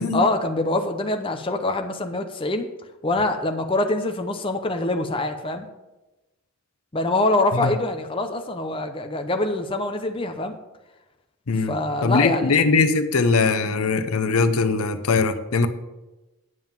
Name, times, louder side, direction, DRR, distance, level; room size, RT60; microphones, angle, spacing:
voice 1, 0.1-2.7 3.0-5.7 6.9-10.6 11.7-12.6, left 2 dB, 25° left, 5 dB, 0.7 m, -24 dB
voice 2, 11.5-15.7, left 4 dB, 90° left, 10 dB, 0.7 m, -21 dB
9.3 x 5.5 x 7.4 m, 1.0 s
head